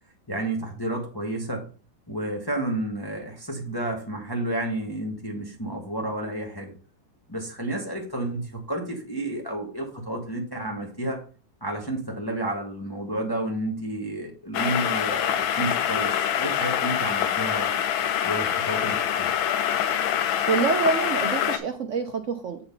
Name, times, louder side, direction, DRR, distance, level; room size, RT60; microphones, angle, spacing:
voice 1, 0.3-1.6 2.1-6.7 7.3-11.2 11.6-17.7 18.2-19.3, right 1 dB, 15° left, 1 dB, 0.9 m, -31 dB
sound 1, 14.5-21.6, left 9 dB, 90° left, 1.5 m, -25 dB
voice 2, 20.5-22.6, right 5 dB, 70° right, 6 dB, 0.7 m, -26 dB
7.9 x 4.2 x 5.3 m, 0.39 s
omnidirectional pair, 2.1 m